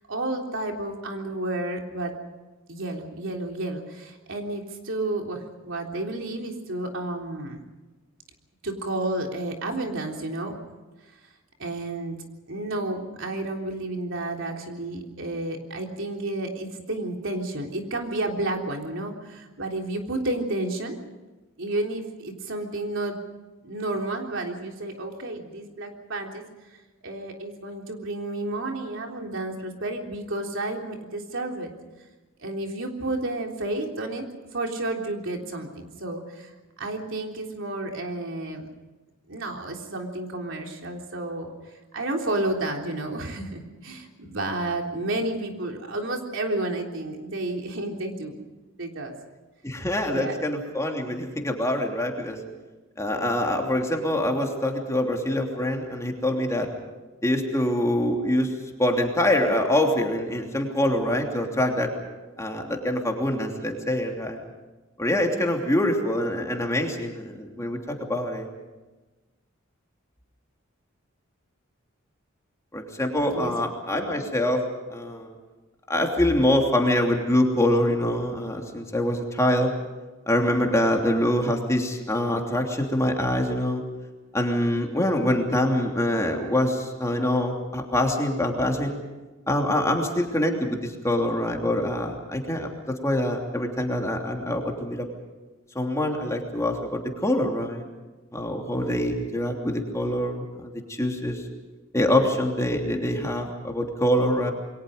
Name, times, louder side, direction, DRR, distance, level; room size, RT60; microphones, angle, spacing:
voice 1, 0.1-2.2 2.7-7.6 8.6-10.6 11.6-12.2 12.5-21.0 21.6-23.2 23.6-26.4 27.0-31.7 32.4-34.2 34.5-36.5 36.8-38.7 39.3-41.5 41.9-48.4 48.8-49.2 50.1-50.4 73.3-73.5 73.9-74.2, right 2 dB, 65° right, 2 dB, 3.6 m, -31 dB
voice 2, 49.6-52.4 53.0-56.7 57.2-58.5 58.8-61.9 62.4-64.4 65.0-67.8 68.1-68.5 72.7-74.6 74.9-75.3 75.9-79.7 80.3-83.8 84.3-89.0 89.5-95.1 95.7-97.8 98.3-101.4 101.9-104.5, left 1 dB, 15° left, 2 dB, 3.0 m, -25 dB
28.5 x 23.0 x 5.2 m, 1.2 s
head